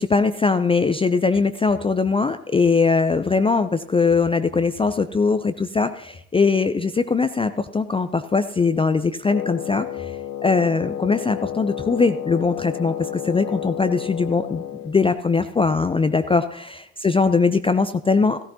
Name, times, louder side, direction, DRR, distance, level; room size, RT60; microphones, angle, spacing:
voice 1, 0.0-10.2 10.4-18.4, left 4 dB, 15° left, 10 dB, 0.4 m, -21 dB
Wind instrument woodwind instrument, 9.3-15.0, left 11 dB, 45° left, 0.9 m, -31 dB
14.5 x 13.5 x 2.8 m, 0.74 s
figure-of-eight pair, 50°, 40 cm